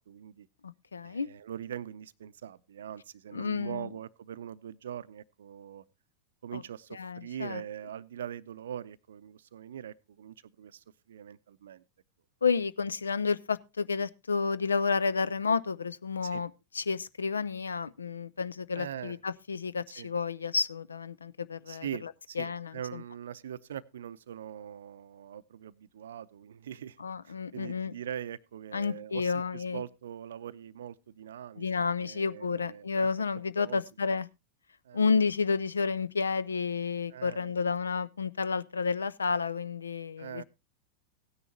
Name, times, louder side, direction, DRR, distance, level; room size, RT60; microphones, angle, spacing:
voice 1, 0.0-0.5 1.0-5.8 6.4-11.8 16.2-16.4 18.7-19.2 20.0-20.1 21.7-27.0 27.5-33.1 33.6-33.8 34.8-35.0 37.1-37.5 40.2-40.4, right 9 dB, 65° right, 0.6 m, -42 dB
voice 2, 0.6-1.3 3.3-3.9 6.5-6.6 6.9-7.6 12.4-16.5 16.7-23.0 27.0-27.9 28.7-29.8 31.6-34.3 34.9-40.4, left 5 dB, 75° left, 0.5 m, -31 dB
16.5 x 9.8 x 2.8 m
figure-of-eight pair, 90°, 0 cm